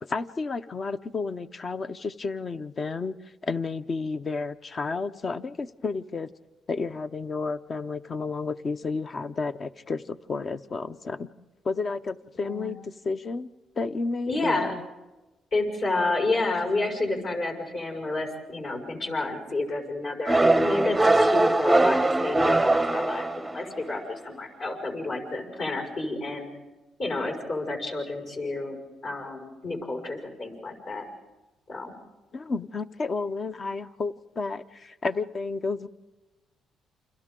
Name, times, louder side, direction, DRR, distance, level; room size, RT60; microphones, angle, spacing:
voice 1, 0.0-3.2 3.4-6.3 6.7-11.3 11.6-13.5 13.8-14.8 32.3-35.9, left 4 dB, 40° left, 11 dB, 0.7 m, -31 dB
voice 2, 12.4-12.7 14.3-14.8 15.5-23.3 23.5-26.5 27.0-28.8 29.0-31.0 31.7-31.9, left 2 dB, 60° left, -1 dB, 5.8 m, -30 dB
sound 1, 20.3-23.8, right 2 dB, 10° right, 0.7 m, -21 dB
29.0 x 26.5 x 3.8 m, 1.1 s
cardioid pair, 90°, 0 cm